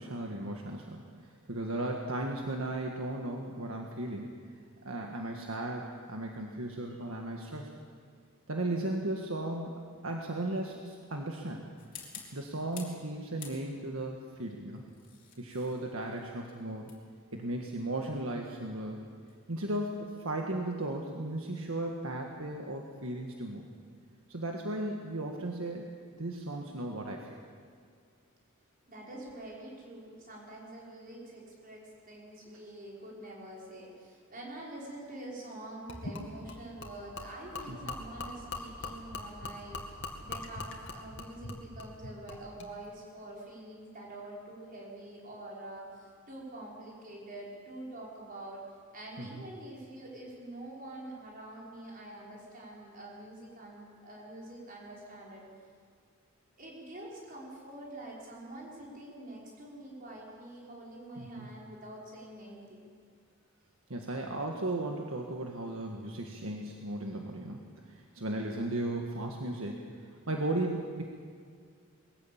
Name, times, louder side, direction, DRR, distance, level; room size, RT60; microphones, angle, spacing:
voice 1, 0.0-4.3 4.8-7.7 8.5-11.7 12.3-14.8 15.4-16.9 17.3-19.0 19.5-23.6 24.3-25.9 26.2-27.4 37.7-38.0 49.2-49.5 61.2-61.5 63.9-71.0, right 1 dB, 70° right, 1 dB, 1.7 m, -36 dB
sound 1, 11.8-13.0 13.4-14.0 14.7-19.5, left 7 dB, 40° left, 3.7 m, -51 dB
voice 2, 28.9-48.7 48.9-55.4 56.6-62.9, right 1 dB, 40° right, -3 dB, 5.4 m, -46 dB
Gurgling / Liquid, 35.9-42.7, left 3 dB, 60° left, 2.4 m, -42 dB
21.5 x 15.0 x 8.8 m, 2.1 s
head